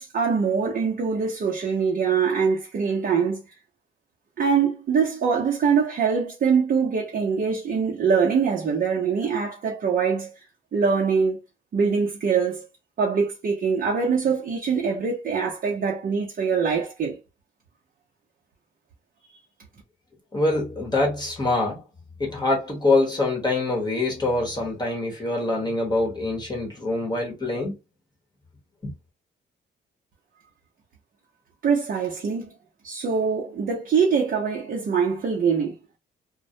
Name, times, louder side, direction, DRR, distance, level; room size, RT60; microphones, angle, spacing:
voice 1, 0.0-3.4 4.4-10.3 10.7-11.4 11.7-12.6 13.0-17.2 31.6-32.5 32.8-35.8, right 6 dB, 50° right, 0.7 m, -23 dB
voice 2, 20.3-21.8 22.2-27.7, left 2 dB, 20° left, 0.9 m, -24 dB
2.2 x 2.1 x 2.7 m
cardioid pair, 90°, 20 cm